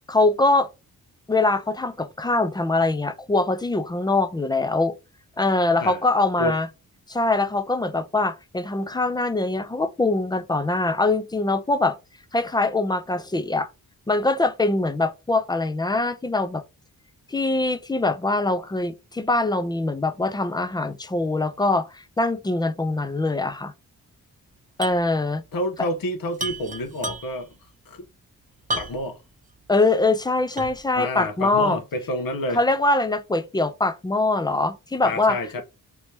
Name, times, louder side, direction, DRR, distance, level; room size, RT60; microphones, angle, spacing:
voice 1, 0.1-0.7 1.3-4.9 5.4-6.7 7.1-12.0 12.3-13.7 14.1-16.6 17.3-23.7 24.8-25.4 29.7-31.8 32.5-35.6, left 2 dB, 15° left, 0.3 m, -23 dB
sound 1, 24.8-25.1 25.3-25.4 26.3-27.5 28.7-29.2 29.7-29.8 30.6-30.9, right 1 dB, 25° right, 0.8 m, -31 dB
voice 2, 25.5-27.5 27.9-28.0 28.8-29.2 30.9-32.6 35.0-35.6, left 1 dB, 75° left, 1.0 m, -29 dB
3.2 x 3.0 x 2.7 m
wide cardioid pair, 140°, 34 cm